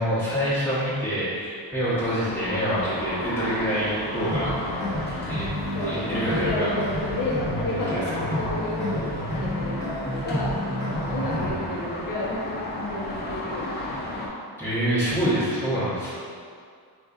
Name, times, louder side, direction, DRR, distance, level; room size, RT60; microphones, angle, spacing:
voice 1, 0.0-4.5 5.2-5.5 5.8-6.8 7.7-8.2 11.2-11.7 14.6-16.1, equal, 5° left, -12 dB, 1.1 m, -26 dB
sound 1, 1.9-14.3, left 1 dB, 25° left, 0.4 m, -34 dB
sound 2, 4.1-11.5, left 1 dB, 25° right, 1.1 m, -30 dB
voice 2, 5.7-10.6 10.9-13.9, left 1 dB, 50° left, -7 dB, 0.8 m, -31 dB
4.2 x 2.4 x 2.4 m, 2.1 s
wide cardioid pair, 160°, 43 cm